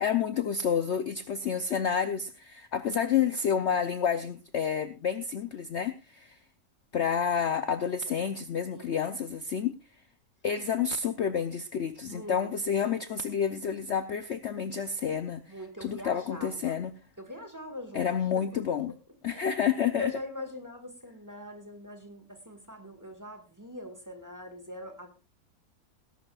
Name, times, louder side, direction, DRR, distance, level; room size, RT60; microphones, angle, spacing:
voice 1, 0.0-6.4 6.9-9.7 10.4-16.9 17.9-18.9 19.2-20.1, left 7 dB, 55° left, 10 dB, 0.8 m, -29 dB
voice 2, 12.0-12.9 15.5-16.8 17.2-18.1 18.7-19.5 20.0-25.1, left 1 dB, 10° right, 6 dB, 1.8 m, -43 dB
19.5 x 11.5 x 2.4 m, 0.29 s
omnidirectional pair, 1.7 m